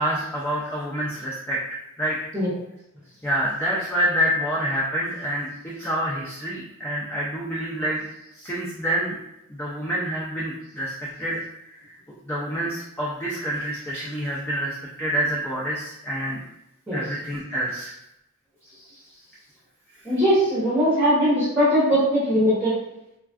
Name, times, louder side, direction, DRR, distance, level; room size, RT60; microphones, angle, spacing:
voice 1, 0.0-2.2 3.2-8.1 8.3-9.2 9.5-11.4 11.7-11.8 12.3-16.4 16.9-18.0 18.6-19.0, equal, 10° left, -5 dB, 0.3 m, -27 dB
voice 2, 20.0-22.7, equal, 5° right, -9 dB, 0.8 m, -20 dB
3.3 x 2.3 x 2.3 m, 0.86 s
head